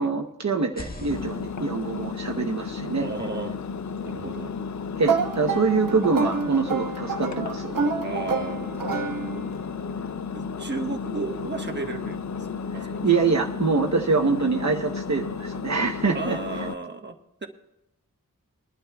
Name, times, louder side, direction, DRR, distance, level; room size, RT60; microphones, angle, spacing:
voice 1, 0.0-3.1 5.0-7.8 12.8-16.4, right 4 dB, 55° right, 2 dB, 1.0 m, -25 dB
sound 1, 0.6-4.4, left 2 dB, 25° left, 1.5 m, -44 dB
Engine, 1.1-16.7, left 5 dB, 55° left, 0.5 m, -33 dB
voice 2, 2.9-3.5 4.0-4.5 7.9-9.5 10.3-12.5 12.7-13.0 16.1-17.5, right 3 dB, 30° right, 4 dB, 1.4 m, -34 dB
sound 2, 5.0-9.7, right 5 dB, 70° right, 1.5 m, -28 dB
22.0 x 11.5 x 2.3 m, 0.86 s
wide cardioid pair, 95°, 34 cm